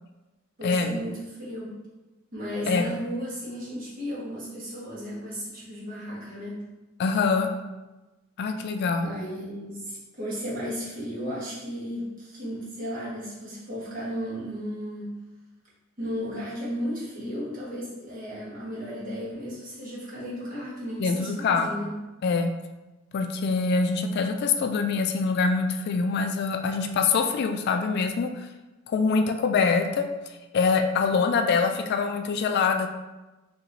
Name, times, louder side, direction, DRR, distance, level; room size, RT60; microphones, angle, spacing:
voice 1, 0.6-1.8 2.3-6.6 9.0-15.1 16.0-22.0, equal, 45° right, -7 dB, 1.3 m, -34 dB
voice 2, 7.0-7.5 8.4-9.1 21.0-21.7 22.2-22.5 23.1-28.3 28.9-30.0 30.5-32.9, left 4 dB, 55° left, 5 dB, 0.3 m, -24 dB
4.4 x 2.8 x 2.6 m, 1.1 s
head